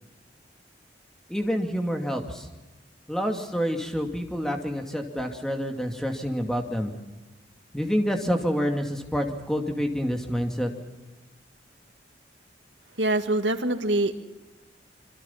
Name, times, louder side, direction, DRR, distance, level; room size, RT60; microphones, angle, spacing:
voice 1, 1.3-2.5 3.1-6.9 7.7-10.7, equal, 5° left, 3 dB, 2.5 m, -28 dB
voice 2, 13.0-14.1, right 2 dB, 90° right, 7 dB, 2.0 m, -24 dB
26.5 x 24.0 x 5.8 m, 1.1 s
head